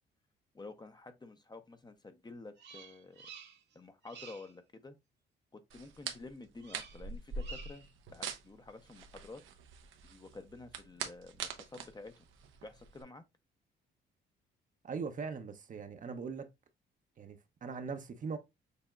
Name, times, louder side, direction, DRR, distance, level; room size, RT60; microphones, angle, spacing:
voice 1, 0.5-3.2 3.7-5.0 5.5-9.4 10.0-12.1 12.6-13.2, left 3 dB, 20° left, 0.7 m, -50 dB
Bird vocalization bird call bird song, 2.6-3.7 4.0-4.5 6.6-7.1 7.4-7.9, right 6 dB, 60° right, 1.2 m, -51 dB
sound 1, 5.7-13.0, right 5 dB, 80° right, 0.7 m, -44 dB
voice 2, 14.8-16.5 17.2-18.4, right 5 dB, 40° right, 0.7 m, -40 dB
6.7 x 2.8 x 2.3 m
cardioid pair, 90°, 20 cm